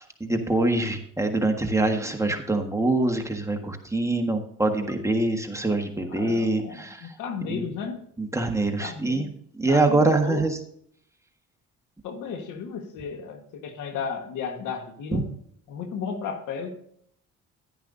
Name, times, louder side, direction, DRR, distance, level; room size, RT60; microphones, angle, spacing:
voice 1, 0.0-7.1 7.5-7.6 8.2-9.3 9.5-10.6 15.1-15.2, right 2 dB, 10° right, 3 dB, 1.5 m, -24 dB
voice 2, 6.1-8.0 8.8-9.3 9.7-10.5 12.0-15.3 15.7-16.7, left 6 dB, 90° left, 7 dB, 1.5 m, -34 dB
11.0 x 10.5 x 2.7 m, 0.68 s
cardioid pair, 90°, 30 cm